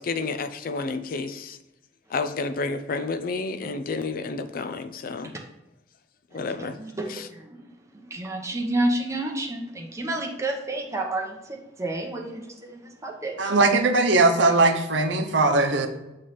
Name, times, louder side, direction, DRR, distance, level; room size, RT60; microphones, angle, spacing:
voice 1, 0.0-1.6 2.1-5.3 6.3-6.8 7.1-7.3, left 4 dB, 50° left, 9 dB, 0.5 m, -30 dB
voice 2, 6.6-7.7 8.0-13.4, right 2 dB, 15° right, 1 dB, 0.9 m, -30 dB
voice 3, 13.4-15.9, right 3 dB, 85° right, 4 dB, 0.8 m, -20 dB
7.4 x 3.3 x 4.1 m, 0.94 s
head